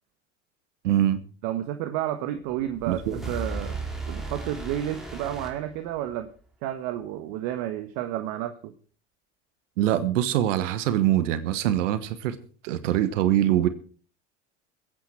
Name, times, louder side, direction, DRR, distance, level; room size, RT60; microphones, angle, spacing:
voice 1, 0.8-1.2 2.9-3.2 9.8-12.4 12.6-13.7, right 12 dB, 80° right, 13 dB, 1.2 m, -23 dB
voice 2, 1.4-3.8 4.1-6.3 6.6-8.7, right 12 dB, 65° right, 8 dB, 1.3 m, -31 dB
sound 1, 2.7-6.3, right 2 dB, ahead, 4.1 m, -36 dB
22.0 x 8.9 x 4.5 m, 0.40 s
hypercardioid pair, 85°, 36 cm